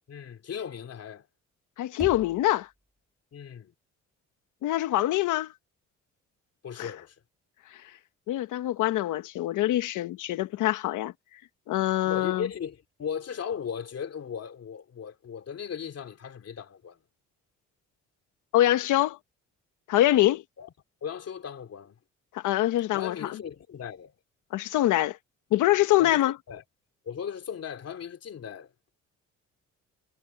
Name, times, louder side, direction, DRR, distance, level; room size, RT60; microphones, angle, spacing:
voice 1, 0.1-1.3 3.3-3.7 6.6-7.1 12.0-17.0 20.6-20.7 21.0-22.0 22.9-24.1 26.0-26.6 27.0-28.7, left 7 dB, 55° left, 2.9 m, -37 dB
voice 2, 1.8-2.7 4.6-5.5 6.8-6.9 8.3-11.1 11.7-12.5 18.5-19.2 19.9-20.4 22.3-23.1 24.5-25.2 25.5-26.4, left 14 dB, 85° left, 1.2 m, -24 dB
Knock, 2.0-2.9, equal, ahead, 3.0 m, -41 dB
cardioid pair, 90°, 30 cm